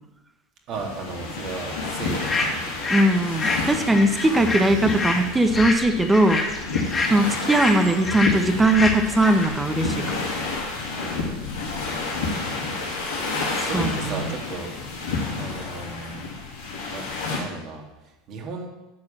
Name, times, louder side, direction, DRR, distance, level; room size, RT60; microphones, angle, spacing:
sound 1, 0.7-17.4, left 3 dB, 90° left, 3.4 m, -30 dB
voice 1, 0.7-2.9 4.0-4.2 6.9-7.1 11.1-12.3 13.5-14.8 15.4-16.3 16.9-18.7, right 3 dB, 50° right, 0 dB, 2.7 m, -36 dB
sound 2, 2.2-3.1 3.4-9.5, left 3 dB, 25° left, 2.2 m, -27 dB
voice 2, 2.9-6.4 7.1-10.1 13.7-14.3, right 1 dB, 15° right, 7 dB, 1.2 m, -20 dB
sound 3, 4.0-6.1 7.4-9.3, right 1 dB, 70° right, 3.1 m, -39 dB
10.5 x 4.8 x 7.5 m, 1.0 s
hypercardioid pair, 90°, 0 cm